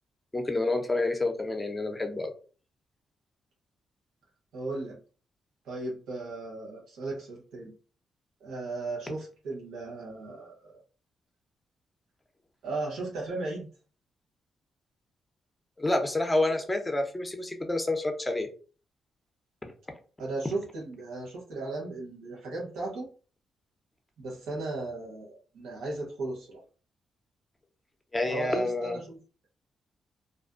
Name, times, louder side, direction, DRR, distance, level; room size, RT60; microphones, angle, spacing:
voice 1, 0.3-2.3 15.8-18.5 19.6-19.7 28.1-29.0, left 2 dB, 15° left, 5 dB, 0.7 m, -28 dB
voice 2, 4.5-5.0 5.6-7.7 8.4-10.8 12.6-13.7 20.2-23.1 24.2-26.6 28.3-29.2, right 2 dB, 85° right, -4 dB, 0.9 m, -36 dB
2.5 x 2.2 x 2.4 m, 0.38 s
cardioid pair, 65°, 0 cm